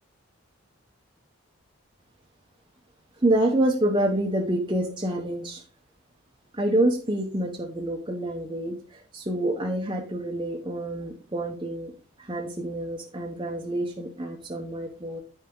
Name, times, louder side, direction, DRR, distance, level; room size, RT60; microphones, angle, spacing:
voice 1, 3.2-5.6 6.5-11.9 12.2-15.2, right 1 dB, 20° right, 0 dB, 0.9 m, -27 dB
9.1 x 5.4 x 3.7 m, 0.39 s
head